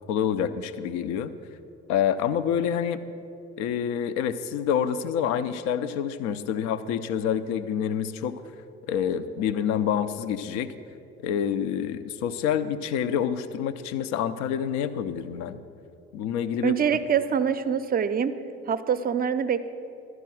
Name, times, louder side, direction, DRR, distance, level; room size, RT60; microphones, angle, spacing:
voice 1, 0.1-1.3 1.9-3.0 3.6-8.4 8.9-10.7 11.2-15.6 16.1-16.7, left 8 dB, 60° left, 13 dB, 0.6 m, -27 dB
voice 2, 16.6-18.3 18.7-19.7, right 7 dB, 30° right, 11 dB, 0.6 m, -24 dB
12.5 x 4.8 x 7.7 m, 2.6 s
figure-of-eight pair, 55°, 32 cm